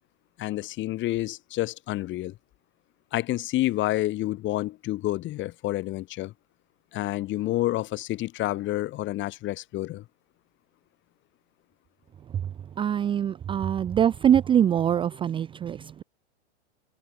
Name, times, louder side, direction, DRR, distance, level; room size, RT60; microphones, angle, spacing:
voice 1, 0.4-2.3 3.1-6.3 6.9-10.0, left 16 dB, 35° left, 4.3 m, -29 dB
voice 2, 12.8-16.0, right 9 dB, 15° right, 0.6 m, -23 dB
hypercardioid pair, 115°, 35 cm